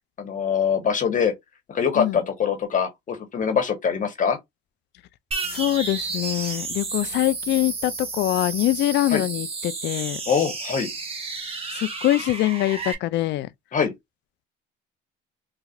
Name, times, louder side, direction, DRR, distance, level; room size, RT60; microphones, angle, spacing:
voice 1, 0.2-1.3 1.7-4.4 9.1-9.2 10.3-10.9 13.7-13.9, left 7 dB, 40° left, 1.1 m, -23 dB
sound 1, 5.3-12.9, right 4 dB, 30° right, 1.2 m, -32 dB
voice 2, 5.5-10.2 11.7-13.5, left 15 dB, 60° left, 0.4 m, -24 dB
4.1 x 2.3 x 2.4 m
supercardioid pair, 85°, 20 cm